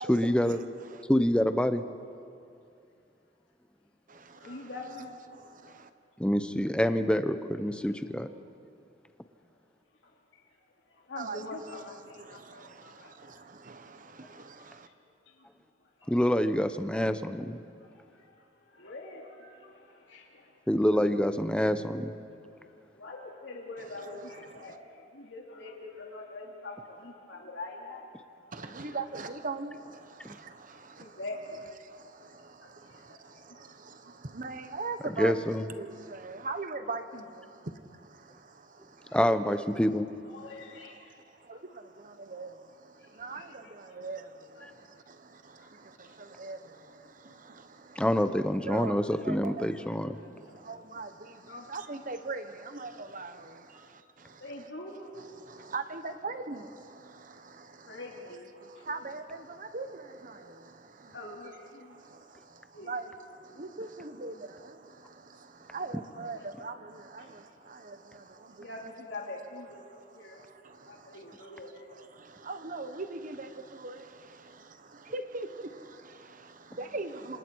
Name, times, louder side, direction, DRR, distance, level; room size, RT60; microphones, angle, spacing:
voice 1, 0.1-0.6 1.1-1.8 6.2-8.3 16.1-17.6 20.7-22.1 30.2-30.4 35.2-35.7 39.1-40.0 48.0-50.2, equal, 5° left, 9 dB, 0.9 m, -26 dB
voice 2, 4.3-5.2 10.0-10.6 10.9-13.4 14.2-14.9 15.3-15.5 15.8-16.5 17.8-20.6 20.9-21.1 22.6-29.3 30.7-31.7 32.0-32.1 32.6-33.7 39.0-39.2 40.3-41.6 42.3-42.5 43.0-44.0 44.6-44.7 45.6-45.7 46.0-46.2 47.3-47.4 50.1-50.6 51.4-51.7 53.7-53.9 54.4-55.3 55.5-55.7 57.8-58.9 61.1-62.1 62.7-62.9 63.5-63.6 66.2-66.4 67.2-67.4 68.3-70.4 70.9-72.1, left 2 dB, 80° left, -1 dB, 2.9 m, -46 dB
voice 3, 28.8-29.7 34.4-35.3 35.8-35.9 36.3-37.0 42.3-42.5 43.2-43.4 44.0-44.2 46.5-46.6 48.7-48.9 49.2-49.6 51.0-51.1 51.7-52.4 52.8-53.3 55.7-56.6 58.9-59.2 59.7-59.9 62.9-63.0 63.6-63.9 64.2-64.3 65.7-66.4 66.6-66.7 72.5-73.1 73.8-73.9 75.1-75.5 76.9-77.1, right 3 dB, 45° right, 9 dB, 1.2 m, -36 dB
27.0 x 27.0 x 4.7 m, 2.5 s
head